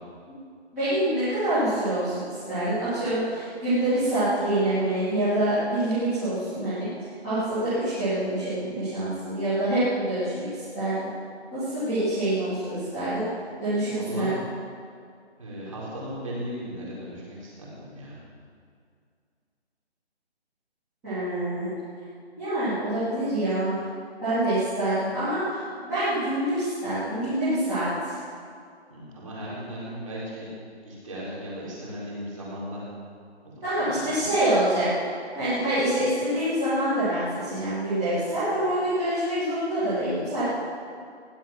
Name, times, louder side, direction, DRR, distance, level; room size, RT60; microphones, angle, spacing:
voice 1, 0.7-6.9 7.2-10.5 10.7-11.1 11.5-13.2 13.6-14.3 21.0-21.7 22.4-23.8 24.2-28.1 33.6-34.9 35.3-40.5, right 1 dB, 5° right, -19 dB, 2.4 m, -26 dB
voice 2, 13.8-14.3 15.4-18.2 28.9-30.5 30.8-32.8 33.4-34.2, equal, 30° right, -7 dB, 4.5 m, -37 dB
16.5 x 11.0 x 6.0 m, 2.2 s
hypercardioid pair, 180°, 34 cm